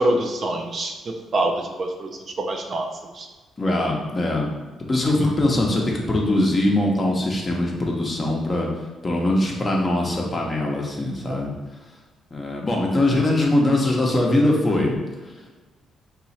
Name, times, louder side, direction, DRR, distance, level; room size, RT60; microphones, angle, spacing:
voice 1, 0.0-2.1 2.5-2.9 3.1-3.3 11.3-11.4, right 1 dB, 45° right, 3 dB, 0.4 m, -25 dB
voice 2, 3.6-4.5 4.9-8.7 9.0-11.5 12.3-14.9, left 1 dB, 30° left, -1 dB, 0.8 m, -21 dB
2.9 x 2.4 x 4.1 m, 1.3 s
cardioid pair, 90°, 0 cm